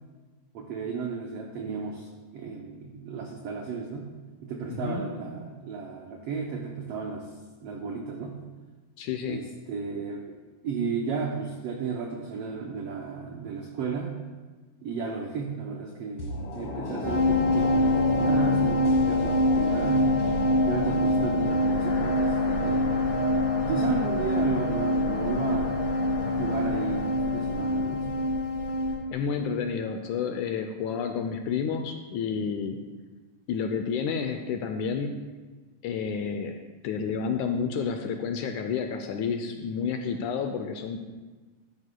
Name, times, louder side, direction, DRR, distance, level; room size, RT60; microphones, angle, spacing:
voice 1, 0.5-4.1 4.4-7.3 7.6-8.4 9.3-10.4 10.6-14.1 14.8-20.1 20.7-23.0 23.7-25.8 26.2-28.2, right 5 dB, 90° right, 1 dB, 1.3 m, -34 dB
voice 2, 4.7-5.0 9.0-9.4 29.1-32.8 33.5-35.2 35.8-36.6 36.8-41.0, left 6 dB, 80° left, 6 dB, 1.8 m, -30 dB
sound 1, 16.2-29.3 29.6-29.7, left 2 dB, 55° left, 1.8 m, -33 dB
sound 2, 17.0-28.9, left 1 dB, 10° right, 1.4 m, -25 dB
12.5 x 10.5 x 2.2 m, 1.3 s
omnidirectional pair, 3.9 m